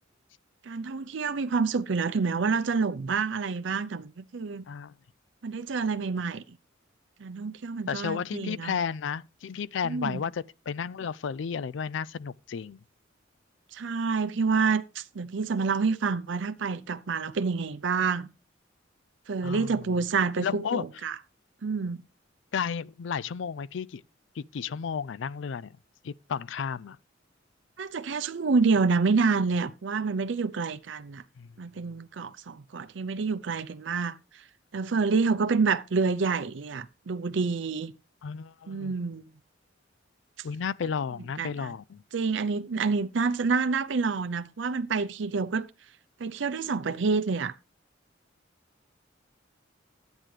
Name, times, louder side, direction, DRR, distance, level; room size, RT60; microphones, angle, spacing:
voice 1, 0.7-4.6 5.4-6.4 7.2-8.7 9.8-10.2 13.7-18.3 19.3-21.2 21.6-22.0 27.8-31.2 31.6-34.2 34.7-37.9 38.7-39.2 41.4-41.7 42.1-45.7 46.2-47.5, right 4 dB, 65° right, 0.5 m, -28 dB
voice 2, 7.9-12.8 19.4-19.8 20.4-20.9 22.5-24.0 24.4-25.7 26.0-27.0 31.4-31.5 38.2-38.9 40.4-42.0, left 6 dB, 70° left, 0.4 m, -33 dB
12.0 x 9.0 x 3.2 m
head